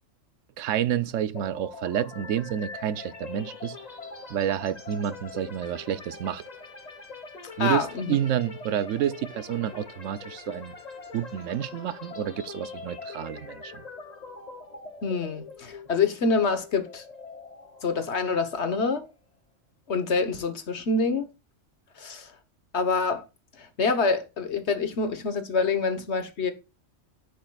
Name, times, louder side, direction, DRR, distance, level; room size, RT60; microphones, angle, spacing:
voice 1, 0.6-3.8 4.3-6.4 7.6-10.7 11.1-13.8, right 10 dB, 80° right, 1.0 m, -29 dB
sound 1, 1.3-19.1, left 4 dB, 35° left, 1.3 m, -43 dB
voice 2, 7.6-8.1 15.0-17.0 17.8-19.1 19.9-21.3 22.0-22.3 22.7-23.2 23.6-26.5, left 4 dB, 60° left, 1.5 m, -26 dB
9.1 x 7.5 x 2.4 m
omnidirectional pair, 1.3 m